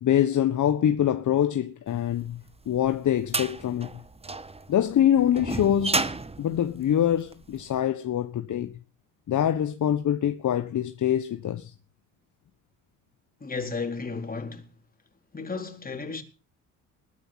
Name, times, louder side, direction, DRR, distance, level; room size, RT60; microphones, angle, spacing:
voice 1, 0.0-4.0 4.7-8.8 9.3-11.7, left 10 dB, 45° left, 1.4 m, -25 dB
sound 1, 2.3-7.6, right 3 dB, 15° right, 1.4 m, -32 dB
voice 2, 13.4-14.7 15.3-16.2, left 4 dB, 20° left, 4.2 m, -33 dB
20.5 x 9.9 x 5.9 m
hypercardioid pair, 60°, 40 cm